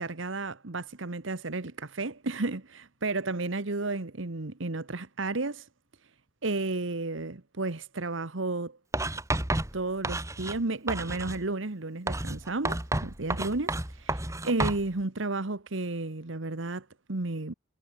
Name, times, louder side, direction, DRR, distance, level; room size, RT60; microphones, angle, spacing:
voice 1, 0.0-5.7 6.4-8.8 9.7-17.5, right 2 dB, 80° right, 1.3 m, -32 dB
Writing, 8.9-10.6 10.9-11.4 12.1-14.8, right 2 dB, 15° right, 1.9 m, -31 dB
head